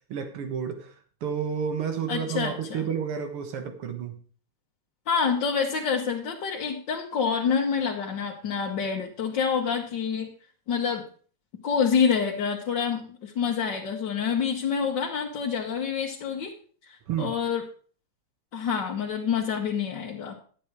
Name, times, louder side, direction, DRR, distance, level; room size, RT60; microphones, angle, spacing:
voice 1, 0.1-0.9 1.2-4.2 17.1-17.3, right 7 dB, 90° right, 6 dB, 2.3 m, -30 dB
voice 2, 2.1-2.9 5.1-10.3 10.7-11.0 11.6-16.5 16.8-17.6 18.5-20.4, left 6 dB, 60° left, -2 dB, 1.8 m, -27 dB
11.0 x 8.6 x 4.8 m, 0.43 s
omnidirectional pair, 2.4 m